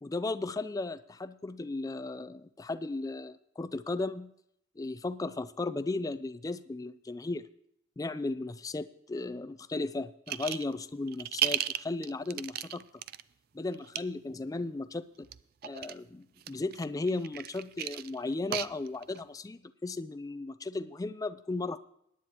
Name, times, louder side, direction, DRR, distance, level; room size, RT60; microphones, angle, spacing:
voice 1, 0.0-4.3 4.8-7.5 8.0-12.8 13.5-15.3 15.6-21.8, left 2 dB, 20° left, 12 dB, 0.4 m, -35 dB
sound 1, 10.3-10.7 11.1-13.2 13.7-14.0 15.2-16.0 16.4-19.2, right 12 dB, 55° right, 0.4 m, -34 dB
21.0 x 9.7 x 2.9 m, 0.75 s
head